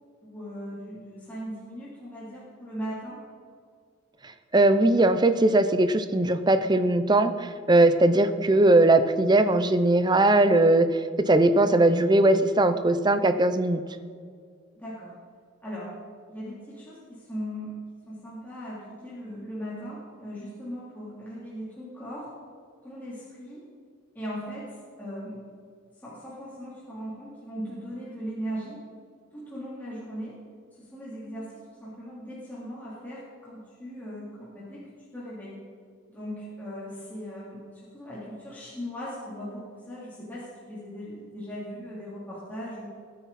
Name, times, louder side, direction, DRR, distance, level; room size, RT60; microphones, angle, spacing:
voice 1, 0.2-3.2 14.7-15.1 15.6-15.9 16.3-17.8 18.1-22.3 22.8-23.6 24.1-25.4 26.0-28.8 29.3-30.4 30.8-35.6 36.1-37.6 37.9-42.9, equal, 10° left, -9 dB, 3.2 m, -38 dB
voice 2, 4.5-13.8, right 2 dB, 20° right, 10 dB, 0.6 m, -20 dB
21.5 x 9.5 x 4.2 m, 2.1 s
head